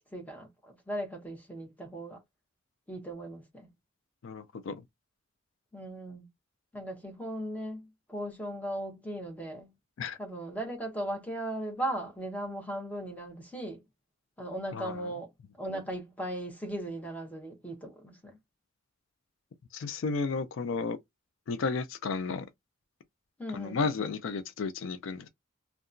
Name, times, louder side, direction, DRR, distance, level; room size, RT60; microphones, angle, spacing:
voice 1, 0.1-2.2 2.9-3.7 5.7-6.3 6.7-9.7 10.2-13.8 14.4-15.3 15.6-18.4 23.4-23.8, right 1 dB, 10° left, 0.8 m, -37 dB
voice 2, 4.2-4.8 10.0-10.2 14.7-15.1 19.7-21.0 21.5-22.5 23.5-25.3, left 4 dB, 85° left, 0.4 m, -33 dB
2.8 x 2.3 x 2.5 m
head